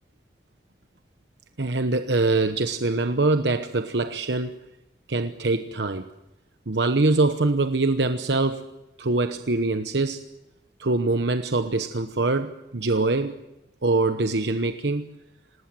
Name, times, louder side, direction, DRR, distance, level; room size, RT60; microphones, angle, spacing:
voice 1, 1.6-4.6 5.1-6.1 6.7-8.7 9.0-10.2 10.8-13.4 13.8-15.1, right 2 dB, 80° right, 9 dB, 1.1 m, -24 dB
27.0 x 19.0 x 7.7 m, 0.97 s
head